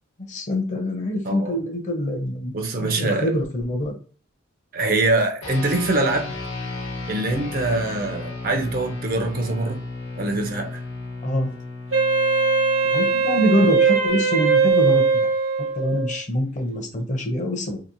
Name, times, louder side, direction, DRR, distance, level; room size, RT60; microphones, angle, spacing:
voice 1, 0.3-2.5 2.8-4.0 11.2-11.5 12.9-15.3 15.8-17.8, equal, 40° left, 3 dB, 0.6 m, -24 dB
voice 2, 1.2-1.6 2.5-3.3 4.7-6.3 7.1-9.8 10.2-10.8, right 2 dB, 50° right, 4 dB, 0.5 m, -24 dB
sound 1, 5.4-15.0, left 2 dB, 80° left, 1.0 m, -35 dB
Wind instrument woodwind instrument, 11.9-16.2, right 5 dB, 70° right, 1.1 m, -20 dB
2.8 x 2.1 x 2.5 m, 0.41 s
head